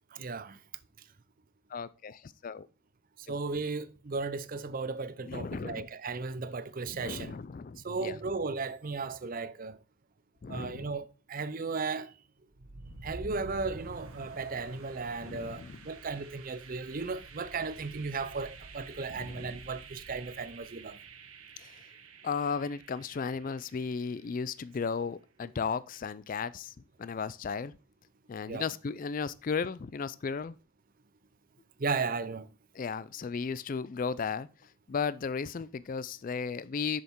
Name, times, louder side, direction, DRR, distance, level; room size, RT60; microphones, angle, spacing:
voice 1, 0.1-0.6 3.3-7.4 7.8-9.8 10.5-12.1 13.0-21.0 28.5-28.7 31.8-32.5, right 4 dB, 40° right, 0.5 m, -35 dB
voice 2, 1.7-2.7 5.2-5.9 6.9-8.1 10.4-10.9 15.2-15.8 19.1-19.6 21.6-21.8 22.2-26.7 27.0-27.7 28.3-30.6 32.7-34.5 34.9-37.0, left 5 dB, 40° left, 0.3 m, -35 dB
sound 1, 12.5-24.4, right 3 dB, 75° right, 1.2 m, -49 dB
6.7 x 6.5 x 4.4 m
head